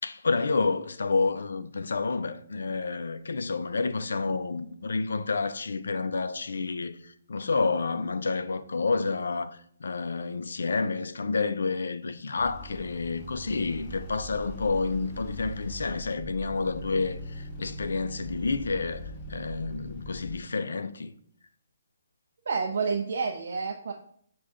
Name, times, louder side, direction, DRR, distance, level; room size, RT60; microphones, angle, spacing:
voice 1, 0.0-21.1, left 4 dB, 80° left, 0.4 m, -29 dB
sound 1, 12.4-20.4, equal, 20° left, 0.6 m, -41 dB
voice 2, 22.5-23.9, right 5 dB, 55° right, 0.4 m, -29 dB
6.2 x 2.3 x 3.5 m
hypercardioid pair, 170°, 0 cm